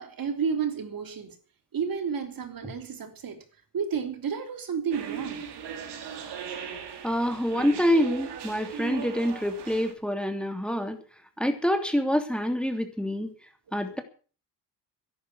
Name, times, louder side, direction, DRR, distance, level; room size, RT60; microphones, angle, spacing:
voice 1, 0.0-1.3 1.7-3.4 3.7-5.4 13.9-14.0, right 6 dB, 55° right, 3.4 m, -31 dB
sound 1, 4.9-9.9, right 8 dB, 75° right, 4.1 m, -37 dB
voice 2, 7.0-11.0 11.4-13.3 13.7-14.0, equal, ahead, 3.1 m, -26 dB
13.5 x 11.5 x 8.0 m
cardioid pair, 90°, 41 cm